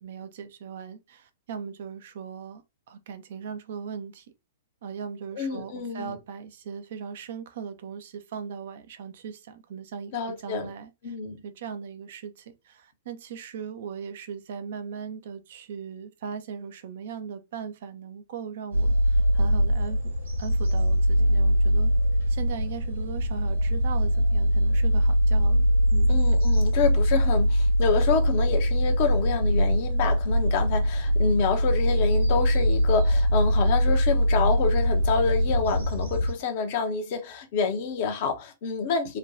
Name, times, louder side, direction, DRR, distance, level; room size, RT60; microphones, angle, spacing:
voice 1, 0.0-4.3 4.8-11.2 11.4-20.1 20.4-21.9 22.3-26.2, right 7 dB, 50° right, 0.4 m, -39 dB
voice 2, 5.3-6.1 10.1-10.7 11.0-11.4 26.1-39.2, left 5 dB, 45° left, 0.7 m, -28 dB
sound 1, 18.7-36.3, equal, 75° right, 1.0 m, -22 dB
3.1 x 2.2 x 2.5 m
figure-of-eight pair, 105°, 0 cm